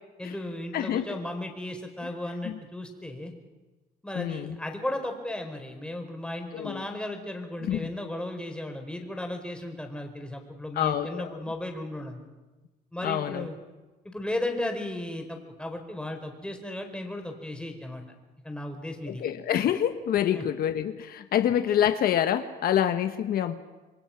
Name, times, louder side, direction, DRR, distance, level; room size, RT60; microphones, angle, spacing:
voice 1, 0.2-3.3 4.0-12.2 12.9-13.6 14.0-18.0 18.4-19.2 20.3-20.4, left 1 dB, 5° left, 4 dB, 4.5 m, -35 dB
voice 2, 0.7-1.2 2.4-2.6 4.1-4.6 6.5-6.8 7.6-7.9 10.7-11.4 13.0-13.5 19.1-23.5, left 10 dB, 65° left, 9 dB, 1.2 m, -27 dB
27.5 x 22.5 x 5.9 m, 1.2 s
cardioid pair, 110°, 17 cm